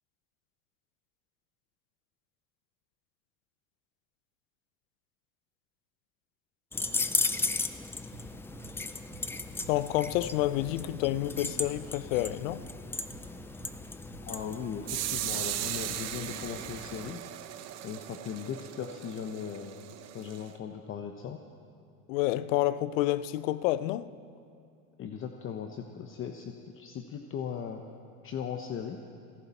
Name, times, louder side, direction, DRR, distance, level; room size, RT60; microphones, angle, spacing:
sound 1, 6.7-17.1, left 3 dB, 5° left, 0.3 m, -36 dB
sound 2, 8.1-16.0, right 4 dB, 75° right, 2.8 m, -51 dB
voice 1, 9.7-12.7 22.1-24.1, left 15 dB, 75° left, 0.7 m, -29 dB
voice 2, 14.2-17.2 17.8-21.4 25.0-27.8 28.2-29.0, left 7 dB, 30° left, 0.8 m, -38 dB
sound 3, 14.9-20.5, right 13 dB, 40° right, 0.8 m, -38 dB
29.0 x 11.5 x 4.2 m
supercardioid pair, 120°, 39 cm